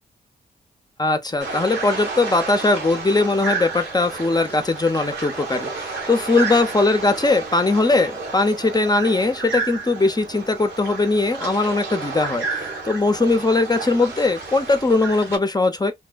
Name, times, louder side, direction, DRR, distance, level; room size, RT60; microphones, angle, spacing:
voice 1, 1.0-12.5 12.8-15.9, left 3 dB, 20° left, 0.6 m, -20 dB
sound 1, 1.4-15.4, right 4 dB, 85° right, 1.1 m, -31 dB
2.7 x 2.1 x 2.3 m
cardioid pair, 55°, 19 cm